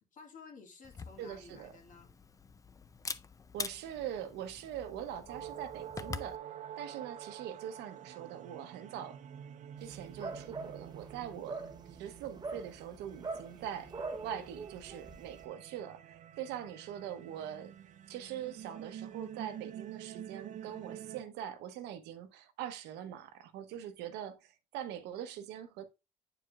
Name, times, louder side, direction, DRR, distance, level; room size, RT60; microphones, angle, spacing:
voice 1, 0.1-2.1, left 4 dB, 50° left, 1.8 m, -53 dB
Camera, 0.8-6.4, left 5 dB, 20° left, 0.4 m, -45 dB
voice 2, 1.2-1.7 3.5-6.4 6.8-9.2 9.8-13.9 14.2-17.7 18.1-25.9, right 10 dB, 85° right, 0.9 m, -43 dB
Singing in space, 5.3-21.2, right 10 dB, 45° right, 0.5 m, -48 dB
Dogs Barking in the Countryside, 9.8-15.4, right 3 dB, 25° right, 0.9 m, -44 dB
8.7 x 4.7 x 2.4 m
cardioid pair, 110°, 17 cm